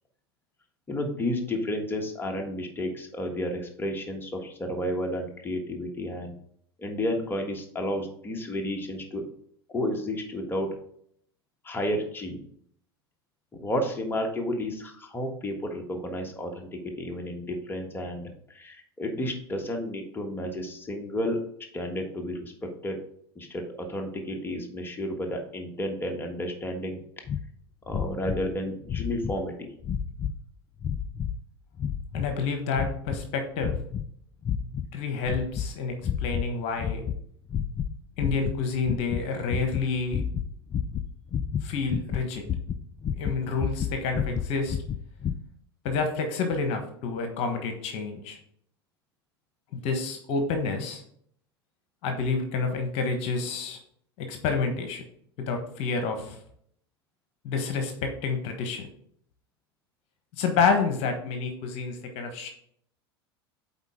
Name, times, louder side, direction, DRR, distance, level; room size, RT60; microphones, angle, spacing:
voice 1, 0.9-6.3 6.8-9.2 9.7-10.7 11.6-12.4 13.6-21.4 21.7-23.0 23.3-27.0 27.9-29.7, left 1 dB, 15° left, 2 dB, 1.5 m, -31 dB
sound 1, 27.3-27.4 27.9-28.5 28.8-29.4 29.8-30.4 30.8-31.4 31.8-32.4 32.7-33.2 33.6-34.1 34.4-34.9 35.2-35.7 36.0-36.5 36.8-37.2 37.5-37.9 38.2-45.3, left 8 dB, 35° left, 0.4 m, -30 dB
voice 2, 32.1-33.8 34.9-35.9 36.2-37.0 38.2-40.2 41.6-42.4 43.1-44.8 45.8-48.4 49.7-51.0 52.0-53.8 54.2-55.0 55.5-56.4 57.4-58.9 60.4-62.5, left 4 dB, 50° left, 5 dB, 1.3 m, -29 dB
8.0 x 4.3 x 3.7 m, 0.65 s
hypercardioid pair, 85°, 13 cm